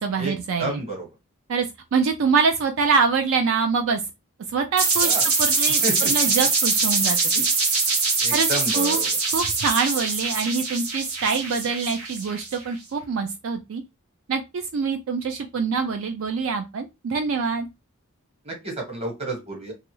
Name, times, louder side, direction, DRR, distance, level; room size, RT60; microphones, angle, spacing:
voice 1, 0.0-0.8 1.5-1.7 1.9-4.0 4.5-7.2 8.3-9.0 9.3-13.8 14.3-17.7, right 5 dB, 65° right, 6 dB, 0.3 m, -25 dB
voice 2, 0.6-1.1 5.0-5.2 5.8-6.1 7.3-7.4 8.2-9.1 18.4-19.7, right 2 dB, 30° right, 1 dB, 1.1 m, -30 dB
sound 1, 4.8-12.6, right 4 dB, 85° right, 0.8 m, -23 dB
3.0 x 2.3 x 3.0 m, 0.24 s
head